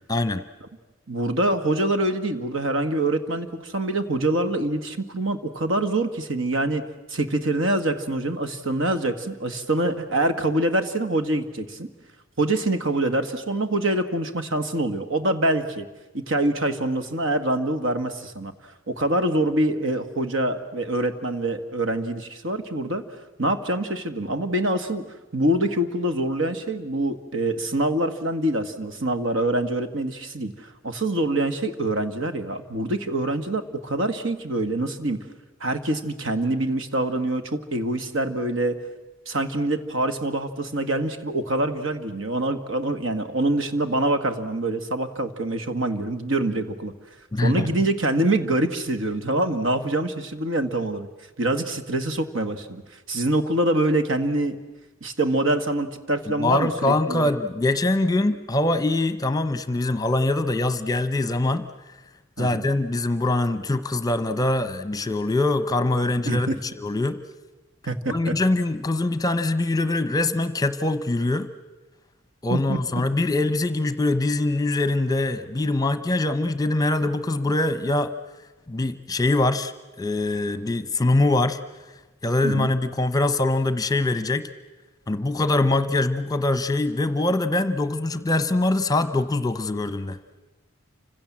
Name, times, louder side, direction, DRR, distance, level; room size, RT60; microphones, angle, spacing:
voice 1, 0.1-0.4 47.3-47.7 56.3-61.6 62.4-67.2 68.1-71.5 72.4-78.1 78.7-79.7 80.0-81.6 82.2-84.5 85.1-90.2, left 2 dB, 15° left, 12 dB, 0.9 m, -23 dB
voice 2, 1.1-6.8 7.1-11.9 12.4-15.8 16.1-18.5 18.9-23.0 23.4-25.0 25.3-35.2 35.6-38.8 39.3-46.9 47.4-51.1 51.4-52.8 53.1-54.6 55.0-57.3 62.4-62.7 66.2-66.6 67.9-68.3 72.5-72.8 82.4-82.7, right 1 dB, 70° right, 8 dB, 1.9 m, -25 dB
29.0 x 26.0 x 7.5 m, 1.2 s
head